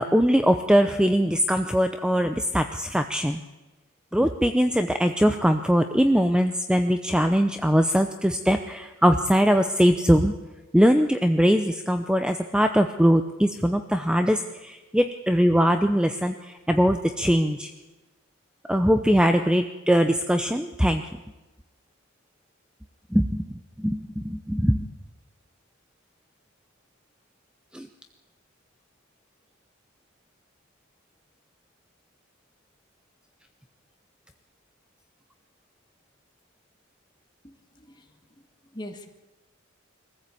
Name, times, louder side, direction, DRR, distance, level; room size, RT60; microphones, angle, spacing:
voice 1, 0.0-3.4 4.1-10.3 10.7-17.7 18.7-21.0 23.1-23.4 23.8-24.9 27.7-27.9, equal, 5° right, 7 dB, 0.7 m, -21 dB
voice 2, 37.4-38.0 38.7-39.1, left 1 dB, 20° left, 5 dB, 1.9 m, -41 dB
23.0 x 15.0 x 8.5 m, 1.1 s
head